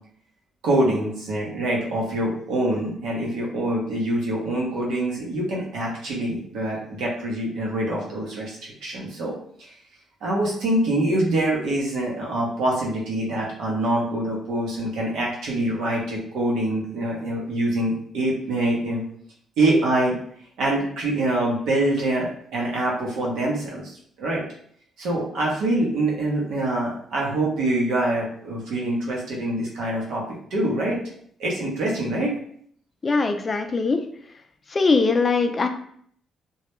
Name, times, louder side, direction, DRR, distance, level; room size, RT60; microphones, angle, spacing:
voice 1, 0.6-9.3 10.2-19.0 19.6-20.1 20.6-24.4 25.0-30.2 30.5-31.0 31.4-32.3, right 1 dB, 85° right, -3 dB, 0.8 m, -25 dB
voice 2, 33.0-34.0 34.7-35.7, left 4 dB, 35° left, 7 dB, 0.3 m, -21 dB
2.2 x 2.1 x 2.9 m, 0.62 s
cardioid pair, 90°, 0 cm